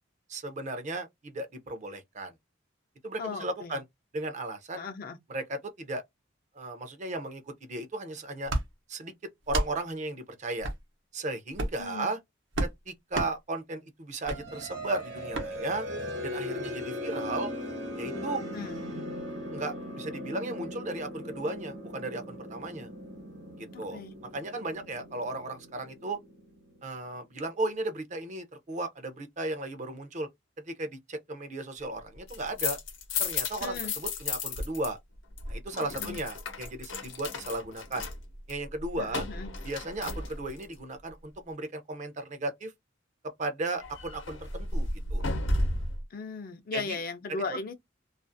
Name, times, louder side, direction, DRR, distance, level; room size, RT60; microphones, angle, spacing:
voice 1, 0.3-2.3 3.0-3.8 4.1-4.8 5.3-6.0 6.5-8.5 8.9-9.1 9.5-10.7 11.1-12.2 12.6-15.9 16.2-17.5 18.0-18.4 19.5-22.9 23.6-24.0 24.3-26.2 26.8-30.3 30.7-32.8 33.2-35.0 35.5-38.1 38.5-39.3 39.6-42.7 43.4-45.2 46.7-47.0 47.3-47.4, right 2 dB, 40° right, 0.5 m, -35 dB
voice 2, 3.2-3.8 4.8-5.2 11.8-12.1 18.5-18.8 23.7-24.1 33.6-33.9 35.8-36.2 39.0-39.5 46.1-47.7, left 4 dB, 50° left, 0.5 m, -37 dB
sound 1, 8.5-8.7 9.4-9.7 10.6-10.8 11.5-11.8 12.5-12.7 13.1-13.3 14.2-14.4 15.3-15.5, right 1 dB, 75° right, 0.8 m, -30 dB
sound 2, 14.3-26.8, left 1 dB, 60° right, 1.1 m, -39 dB
sound 3, 32.1-34.9 35.2-40.7 43.8-46.0, left 2 dB, 80° left, 0.8 m, -34 dB
2.4 x 2.3 x 2.5 m
head